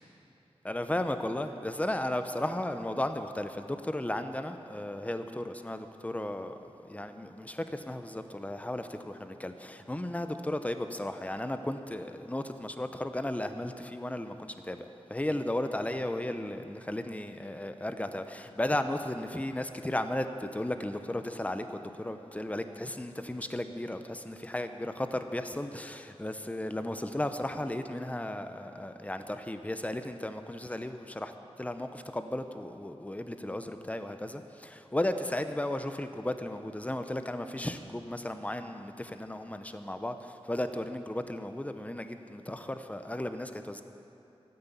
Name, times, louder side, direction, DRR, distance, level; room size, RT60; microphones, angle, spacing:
voice 1, 0.6-31.3 31.6-43.8, left 1 dB, 15° left, 8 dB, 0.8 m, -35 dB
13.5 x 9.5 x 8.2 m, 2.9 s
wide cardioid pair, 75°, 11 cm